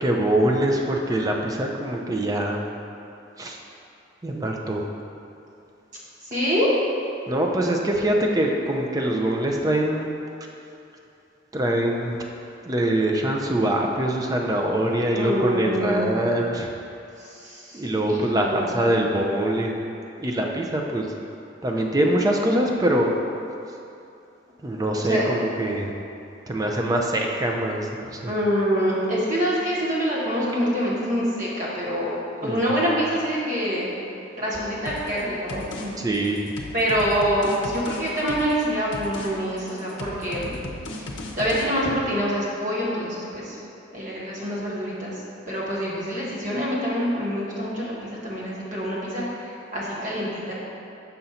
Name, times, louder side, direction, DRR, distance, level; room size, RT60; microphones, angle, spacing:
voice 1, 0.0-2.7 3.4-3.6 4.2-4.8 7.3-10.1 11.5-12.3 12.7-16.7 17.7-19.8 20.2-21.1 21.6-23.1 24.6-25.9 26.5-28.3 32.4-32.9 36.0-36.5, right 1 dB, 20° right, 0 dB, 0.4 m, -23 dB
voice 2, 6.2-6.7 15.1-16.2 17.2-18.7 25.0-25.2 28.3-32.1 32.4-33.9 34.3-36.0 36.7-40.6 41.0-41.1 41.4-43.6 43.9-45.1 45.5-50.5, equal, 40° right, -6 dB, 1.2 m, -26 dB
sound 1, 34.9-35.2 35.5-35.9 36.1-38.6 38.9-39.3 39.6-41.7, left 2 dB, 75° left, 0.6 m, -36 dB
6.9 x 2.6 x 5.6 m, 2.7 s
head